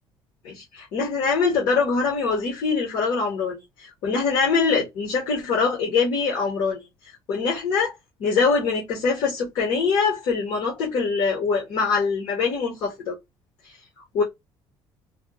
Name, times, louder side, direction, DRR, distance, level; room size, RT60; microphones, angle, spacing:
voice 1, 0.4-6.8 7.3-7.9 8.2-13.2 14.1-14.2, left 4 dB, 70° left, 1.7 m, -23 dB
3.5 x 2.5 x 2.5 m
cardioid pair, 155°, 9 cm